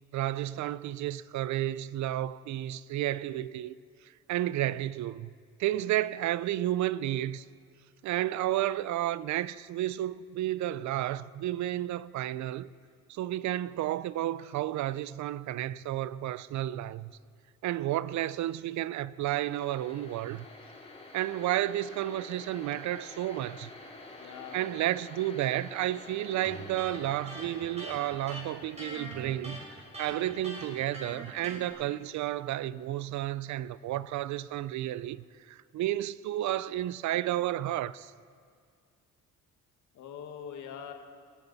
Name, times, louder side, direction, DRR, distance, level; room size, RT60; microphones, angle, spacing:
voice 1, 0.1-3.8 4.3-5.3 5.6-7.4 8.0-12.7 13.1-17.1 17.6-20.4 21.1-23.7 24.5-29.6 30.0-38.1, right 13 dB, 70° right, 0.5 m, -32 dB
sound 1, 19.4-33.3, left 2 dB, 20° left, 2.6 m, -50 dB
voice 2, 24.2-24.8 30.1-30.5 39.9-40.9, left 8 dB, 80° left, 1.6 m, -44 dB
Electric guitar, 26.4-31.7, right 1 dB, 20° right, 4.1 m, -43 dB
18.0 x 13.5 x 4.0 m
cardioid pair, 90°, 30 cm